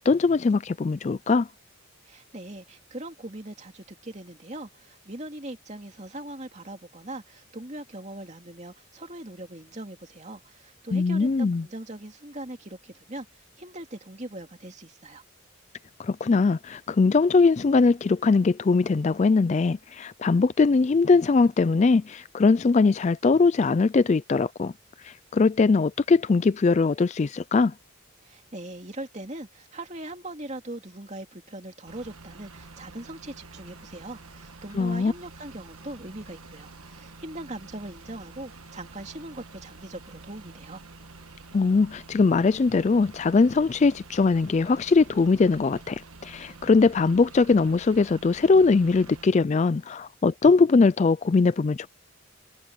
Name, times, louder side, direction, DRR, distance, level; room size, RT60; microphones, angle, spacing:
voice 1, 0.0-1.5 10.9-11.7 16.0-24.7 25.0-27.7 34.7-35.1 41.5-51.9, left 4 dB, 30° left, 0.3 m, -21 dB
voice 2, 2.1-13.3 13.6-15.2 28.3-40.8, right 1 dB, 30° right, 2.8 m, -40 dB
sound 1, 31.9-49.3, right 3 dB, 90° right, 1.4 m, -48 dB
head